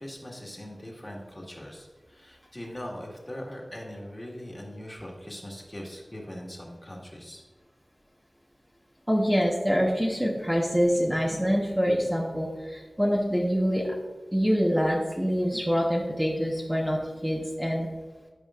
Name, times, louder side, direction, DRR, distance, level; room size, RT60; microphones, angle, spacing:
voice 1, 0.0-7.4, left 1 dB, 20° left, -1 dB, 1.7 m, -41 dB
voice 2, 9.1-13.8 14.3-17.9, equal, 5° right, -3 dB, 1.1 m, -25 dB
13.5 x 5.0 x 2.5 m, 1.4 s
wide cardioid pair, 55°, 0 cm